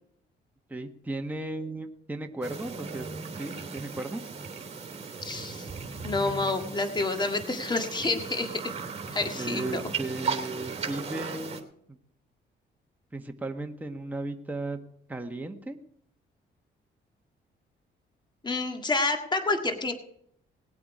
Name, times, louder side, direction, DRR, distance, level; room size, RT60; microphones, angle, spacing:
voice 1, 0.7-3.1 3.3-4.3 9.3-12.0 13.1-14.8 15.1-15.8, right 2 dB, 10° right, 3 dB, 1.4 m, -35 dB
sound 1, 2.4-11.6, right 5 dB, 35° right, 3.0 m, -37 dB
voice 2, 5.2-5.7 6.0-8.6 9.1-9.8 18.4-19.9, left 3 dB, 20° left, 6 dB, 1.8 m, -28 dB
19.0 x 8.5 x 4.9 m, 0.70 s
cardioid pair, 90°, 20 cm